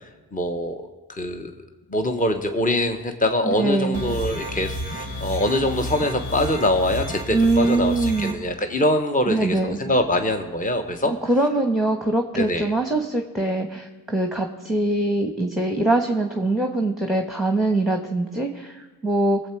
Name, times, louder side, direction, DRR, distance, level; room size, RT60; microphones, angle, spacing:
voice 1, 0.3-0.8 1.1-1.5 1.9-11.1 12.4-12.7, left 1 dB, 20° left, 6 dB, 1.1 m, -23 dB
voice 2, 3.4-4.0 7.3-8.4 9.3-9.8 11.0-19.4, right 2 dB, ahead, 4 dB, 1.2 m, -23 dB
sound 1, 3.9-8.3, equal, 80° left, 2.2 m, -31 dB
19.0 x 7.8 x 4.6 m, 1.3 s
supercardioid pair, 50°, 45 cm